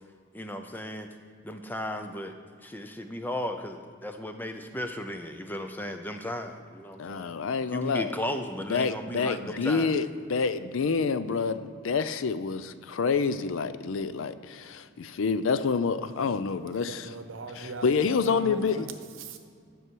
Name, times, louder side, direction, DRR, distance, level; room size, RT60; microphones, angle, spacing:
voice 1, 0.3-1.1 1.4-2.3 2.6-7.4 7.7-9.9, left 1 dB, 10° left, 6 dB, 0.5 m, -35 dB
voice 2, 7.0-8.1 8.7-10.0 10.3-17.1 17.6-18.9, left 5 dB, 75° left, 13 dB, 0.4 m, -28 dB
voice 3, 16.9-18.9 19.2-19.4, right 3 dB, 75° right, 7 dB, 0.8 m, -40 dB
11.0 x 6.2 x 4.6 m, 2.2 s
head